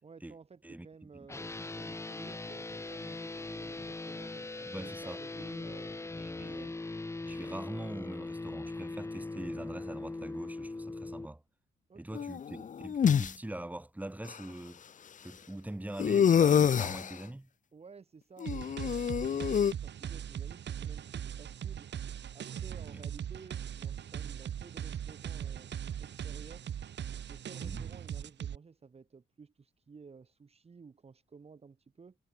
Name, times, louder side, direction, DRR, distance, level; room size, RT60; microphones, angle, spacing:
voice 1, 0.0-6.8 11.9-12.3 17.7-21.9 22.3-25.7 26.0-26.7 27.3-32.2, right 5 dB, 30° right, 3.3 m, -54 dB
sound 1, 1.3-11.3, left 2 dB, 15° left, 1.2 m, -40 dB
voice 2, 4.7-5.2 6.1-6.7 7.2-11.4 12.0-14.8 15.2-17.5 22.9-23.1 27.6-27.9, right 1 dB, 5° right, 5.2 m, -43 dB
sound 2, 12.1-13.3 14.3-14.4 16.0-17.1 18.4-19.7, left 8 dB, 35° left, 0.7 m, -26 dB
sound 3, 18.5-28.6, right 9 dB, 55° right, 2.4 m, -40 dB
wide cardioid pair, 155°, 21 cm